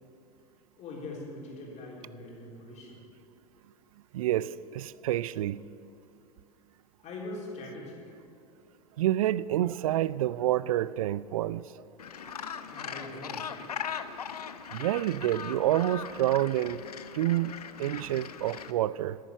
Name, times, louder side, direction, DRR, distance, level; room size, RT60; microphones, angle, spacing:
voice 1, 0.8-3.0 7.0-8.0 12.7-13.4, left 2 dB, 35° left, 3.6 m, -42 dB
voice 2, 4.1-5.6 9.0-11.7 14.7-16.8 17.1-19.2, right 13 dB, 65° right, 0.4 m, -28 dB
Gull seagull, 12.0-18.7, left 7 dB, 80° left, 0.6 m, -40 dB
11.0 x 9.4 x 7.8 m
figure-of-eight pair, 85°, 19 cm